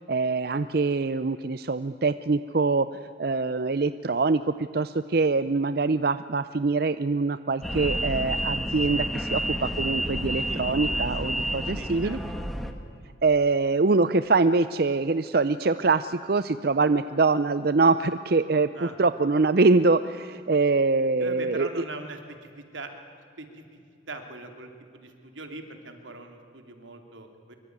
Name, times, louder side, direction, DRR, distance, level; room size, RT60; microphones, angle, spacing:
voice 1, 0.1-2.9 3.2-12.2 13.2-21.8, right 3 dB, 55° right, 12 dB, 0.6 m, -24 dB
sound 1, 7.6-12.7, equal, ahead, 1.6 m, -29 dB
voice 2, 10.5-12.2 18.7-18.9 21.2-22.9 23.4-23.8 24.1-27.5, right 2 dB, 90° right, 5 dB, 3.1 m, -41 dB
24.5 x 24.0 x 9.5 m, 2.4 s
head